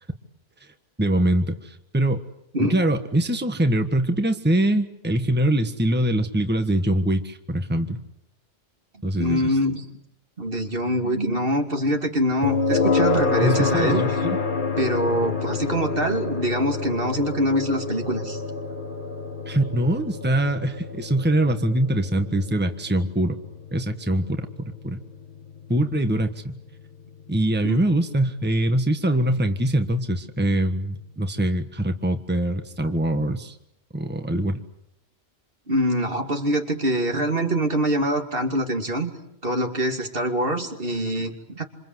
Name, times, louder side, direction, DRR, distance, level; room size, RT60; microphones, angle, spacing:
voice 1, 1.0-2.2 2.6-8.0 9.0-9.6 13.4-14.4 19.5-23.4 23.7-25.0 25.7-26.6 27.3-33.6 33.9-34.6, right 1 dB, 10° right, 7 dB, 1.4 m, -23 dB
voice 2, 9.2-9.9 10.4-14.0 14.8-18.4 27.6-27.8 35.7-39.1 39.4-41.6, right 1 dB, 55° right, 4 dB, 2.9 m, -24 dB
sound 1, 12.4-27.4, left 4 dB, 50° left, 1.7 m, -28 dB
27.5 x 27.5 x 7.9 m, 0.78 s
omnidirectional pair, 1.1 m